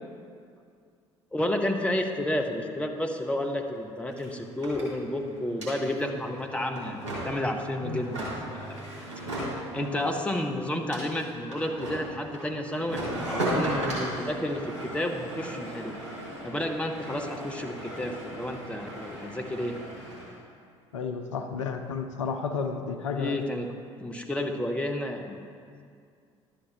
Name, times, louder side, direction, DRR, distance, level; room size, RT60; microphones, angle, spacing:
voice 1, 1.3-8.8 9.7-15.9 16.4-19.8 23.1-23.7 24.0-25.4, left 1 dB, 10° left, 3 dB, 1.1 m, -31 dB
sound 1, 3.4-3.5 3.7-20.3, right 1 dB, 80° right, 2.3 m, -37 dB
voice 2, 9.8-10.1 20.9-23.4, left 5 dB, 80° left, 6 dB, 0.5 m, -32 dB
11.0 x 7.3 x 4.6 m, 2.2 s
figure-of-eight pair, 55°, 15 cm